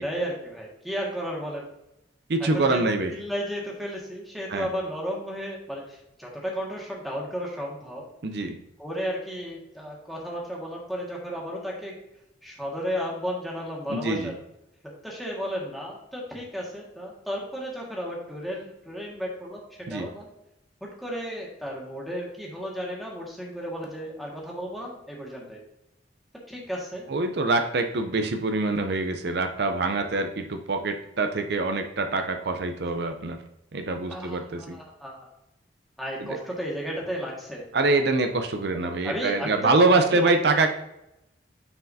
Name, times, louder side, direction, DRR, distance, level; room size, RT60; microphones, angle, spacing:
voice 1, 0.0-1.7 2.4-8.0 8.8-11.9 12.4-14.4 14.8-20.3 20.8-25.6 26.5-27.1 34.1-35.3 36.0-37.6 38.7-40.4, equal, ahead, -4 dB, 1.6 m, -33 dB
voice 2, 2.3-3.1 4.5-4.7 8.2-8.6 13.9-14.3 19.9-20.1 27.1-33.4 33.7-34.8 37.7-40.7, right 3 dB, 60° right, 6 dB, 0.5 m, -25 dB
9.3 x 4.6 x 2.7 m, 0.87 s
head